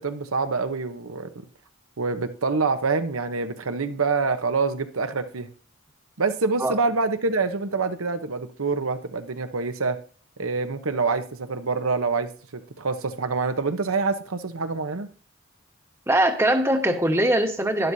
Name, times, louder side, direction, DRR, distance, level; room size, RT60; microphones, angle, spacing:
voice 1, 0.0-1.4 2.0-5.5 6.2-10.0 10.4-15.1, right 4 dB, 90° right, 9 dB, 1.0 m, -26 dB
voice 2, 16.1-17.9, right 1 dB, 10° right, 5 dB, 1.1 m, -21 dB
12.0 x 11.5 x 2.7 m, 0.42 s
head